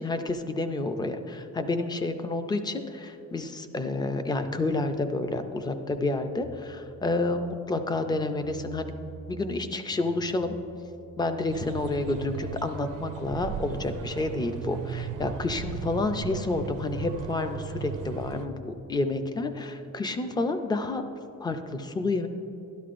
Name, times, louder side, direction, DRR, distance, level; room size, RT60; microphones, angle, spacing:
voice 1, 0.0-8.9 9.3-10.6 11.2-21.0 21.4-22.3, left 2 dB, 15° left, 8 dB, 0.4 m, -29 dB
sound 1, 6.4-7.6 7.9-9.6 9.9-12.3, right 2 dB, 55° left, 1.4 m, -48 dB
sound 2, 11.5-18.5, right 7 dB, 80° right, 0.6 m, -36 dB
12.5 x 11.5 x 2.5 m, 2.9 s
cardioid pair, 175°, 31 cm